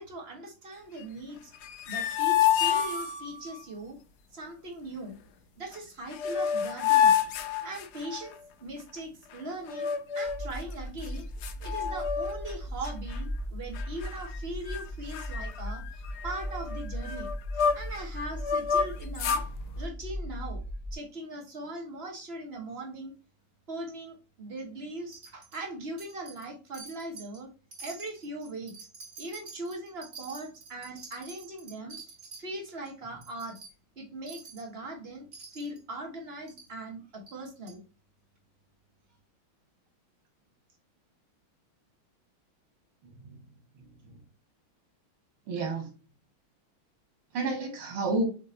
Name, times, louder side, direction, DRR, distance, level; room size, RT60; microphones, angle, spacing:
voice 1, 0.0-1.5 1.9-4.0 4.3-5.2 5.6-7.2 7.6-8.3 8.6-17.3 17.7-19.4 19.8-20.6 20.9-23.1 23.7-27.5 27.8-28.7 29.2-32.0 32.4-33.6 34.0-35.3 35.5-37.8, right 1 dB, 35° right, 1 dB, 1.4 m, -40 dB
sound 1, 1.5-3.6 5.7-5.8 6.1-8.3 9.7-10.5 11.0-11.1 11.4-12.5 12.8-13.2 13.7-14.4 14.7-14.8 15.1-18.0 18.4-19.5, left 8 dB, 70° left, 1.0 m, -28 dB
sound 2, 10.2-21.0, equal, 15° left, 0.9 m, -38 dB
Wind chime, 25.1-25.6 26.0-26.5 26.7-27.4 27.7-32.4 32.8-32.9 33.2-33.7 34.3-34.7 35.3-35.8 36.5-36.7 37.3-37.4 37.7-37.8, right 4 dB, 50° right, 3.1 m, -47 dB
voice 2, 43.0-43.4 43.8-44.2 45.5-45.9 47.3-48.3, right 2 dB, 85° right, 3 dB, 2.5 m, -31 dB
6.5 x 3.1 x 2.6 m, 0.33 s
omnidirectional pair, 2.3 m